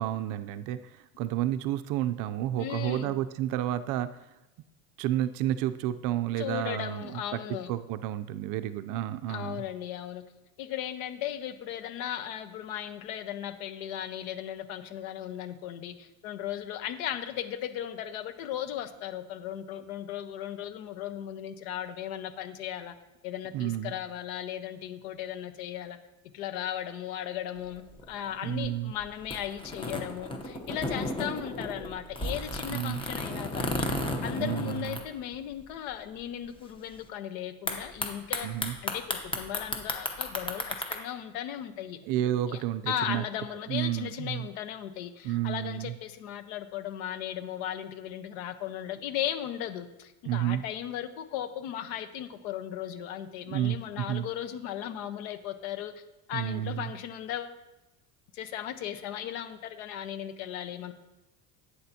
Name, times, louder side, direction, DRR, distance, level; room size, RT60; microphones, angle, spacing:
voice 1, 0.0-4.1 5.0-7.4 7.7-9.6 23.5-23.9 28.4-28.9 32.7-33.0 34.4-35.0 38.4-38.7 42.1-43.2 43.7-44.5 45.2-45.9 50.2-50.6 53.5-54.3 56.3-56.9, right 12 dB, 50° right, 12 dB, 0.5 m, -31 dB
voice 2, 2.6-3.1 6.4-7.7 9.3-10.2 10.6-22.9 23.2-26.0 26.3-33.9 34.2-38.5 38.8-42.0 42.5-56.0 56.3-57.6 58.3-60.9, left 10 dB, 75° left, 10 dB, 1.0 m, -36 dB
sound 1, 27.6-35.7 35.9-36.0 36.2-36.7 37.7-41.0, left 2 dB, 10° left, 0.8 m, -34 dB
11.5 x 8.5 x 2.8 m, 0.99 s
cardioid pair, 145°, 43 cm